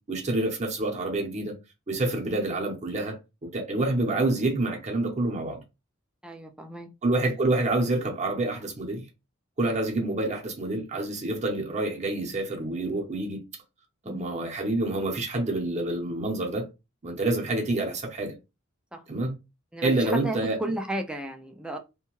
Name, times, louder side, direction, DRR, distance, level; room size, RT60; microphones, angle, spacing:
voice 1, 0.0-1.5 1.9-5.6 7.0-9.1 9.6-13.4 14.1-16.7 17.0-18.3 19.1-19.3 19.8-20.6, right 2 dB, 35° right, 0.7 m, -27 dB
voice 2, 6.2-6.9 14.0-14.3 18.9-19.0 19.7-21.8, right 1 dB, 5° right, 0.3 m, -34 dB
2.7 x 2.2 x 3.0 m
head